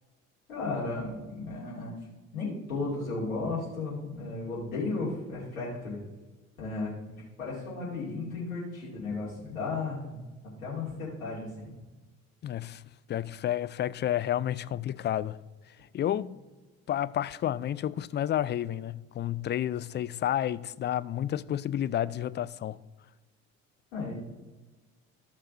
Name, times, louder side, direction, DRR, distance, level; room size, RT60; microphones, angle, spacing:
voice 1, 0.5-1.9 2.3-6.0 6.6-11.7 23.9-24.1, left 3 dB, 80° left, 2.7 m, -34 dB
voice 2, 12.4-12.8 13.1-15.4 15.9-16.4 16.9-22.8, left 11 dB, 30° left, 0.4 m, -30 dB
14.5 x 6.5 x 2.7 m
hypercardioid pair, 50°, 40 cm